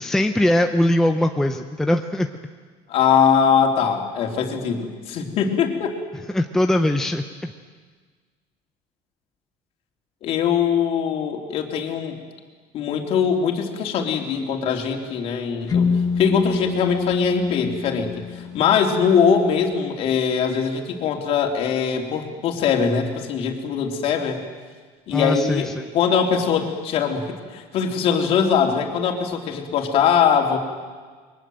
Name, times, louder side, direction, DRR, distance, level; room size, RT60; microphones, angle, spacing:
voice 1, 0.0-2.3 6.3-7.5 25.1-25.9, left 1 dB, 5° left, 4 dB, 0.8 m, -21 dB
voice 2, 2.9-6.0 10.2-12.2 12.7-24.4 25.1-25.7 25.9-30.6, left 7 dB, 45° left, 3 dB, 3.4 m, -21 dB
sound 1, 15.7-19.5, left 5 dB, 25° left, 1.5 m, -26 dB
29.5 x 23.0 x 7.9 m, 1.5 s
cardioid pair, 160°, 14 cm